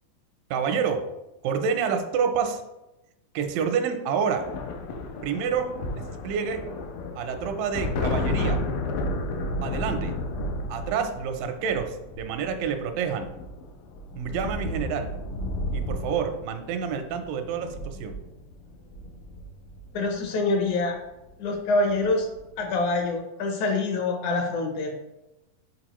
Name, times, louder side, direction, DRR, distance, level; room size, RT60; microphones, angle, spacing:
voice 1, 0.5-1.1 1.4-2.6 3.3-4.5 5.2-6.6 7.2-8.6 9.6-10.1 10.7-13.3 14.2-15.1 15.7-18.2, right 6 dB, 85° right, 6 dB, 2.3 m, -28 dB
sound 1, 4.4-20.1 21.3-21.5 21.8-22.5, left 1 dB, 90° left, 2.4 m, -32 dB
voice 2, 19.9-21.0 21.4-22.3 22.6-24.9, left 3 dB, 75° left, 2 dB, 2.0 m, -25 dB
6.9 x 4.6 x 3.0 m, 0.96 s
omnidirectional pair, 3.8 m